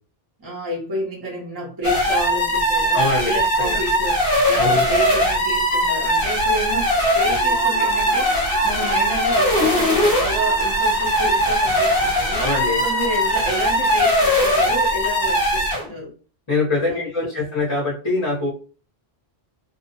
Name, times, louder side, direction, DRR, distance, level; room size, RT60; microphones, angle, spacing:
voice 1, 0.4-4.2 4.5-12.4 12.8-16.1 16.8-17.1, right 1 dB, 25° right, -6 dB, 0.7 m, -30 dB
sound 1, 1.8-15.9, equal, 65° left, 0.8 m, -20 dB
voice 2, 2.9-3.8 4.6-4.8 12.3-12.8 16.5-18.5, left 3 dB, 30° left, -5 dB, 0.8 m, -23 dB
Human voice / Cheering / Applause, 7.0-14.7, right 3 dB, 70° right, 0.8 m, -37 dB
2.5 x 2.1 x 2.7 m, 0.36 s
omnidirectional pair, 1.1 m